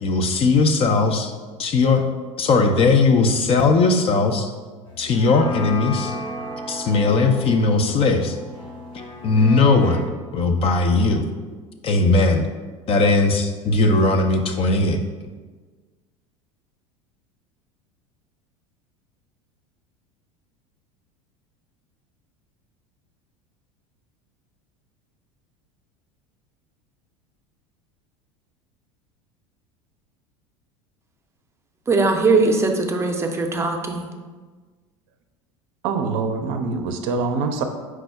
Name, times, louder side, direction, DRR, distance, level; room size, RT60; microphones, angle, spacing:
voice 1, 0.0-1.3 1.6-2.0 2.4-4.5 5.0-6.1 6.7-8.4 9.2-10.0 10.3-11.2 11.8-12.5 12.9-15.0, left 3 dB, 35° left, 5 dB, 0.5 m, -18 dB
sound 1, 4.9-10.0, left 1 dB, 85° left, 1.5 m, -34 dB
voice 2, 31.9-34.1, right 3 dB, 15° right, 3 dB, 0.6 m, -20 dB
voice 3, 35.8-37.6, right 4 dB, 60° right, 6 dB, 0.5 m, -24 dB
4.6 x 2.0 x 4.6 m, 1.4 s
hypercardioid pair, 80°, 17 cm